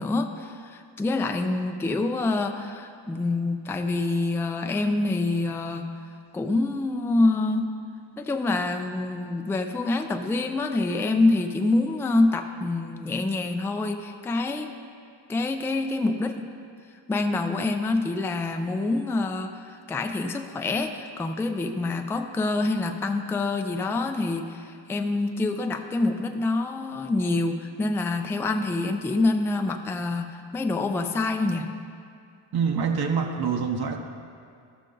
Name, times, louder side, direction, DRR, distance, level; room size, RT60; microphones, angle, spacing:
voice 1, 0.0-5.9 6.3-7.7 8.2-14.8 15.3-16.5 17.1-31.7, left 2 dB, 5° left, 5 dB, 0.3 m, -26 dB
voice 2, 32.5-34.0, right 6 dB, 55° right, 3 dB, 0.8 m, -25 dB
13.0 x 6.4 x 3.8 m, 2.3 s
cardioid pair, 115°, 44 cm